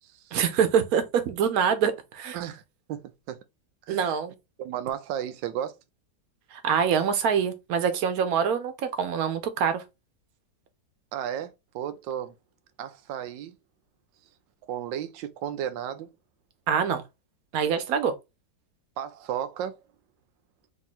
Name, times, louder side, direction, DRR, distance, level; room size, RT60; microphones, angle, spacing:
voice 1, 0.3-2.4 3.9-4.3 6.5-9.8 16.7-17.0 17.5-18.1, right 7 dB, 65° right, 1.1 m, -25 dB
voice 2, 2.9-3.4 3.9-4.1 4.6-5.8 11.1-12.3 12.8-13.5 14.7-16.1 19.0-19.8, right 10 dB, 90° right, 1.3 m, -33 dB
3.7 x 2.7 x 4.0 m
omnidirectional pair, 1.9 m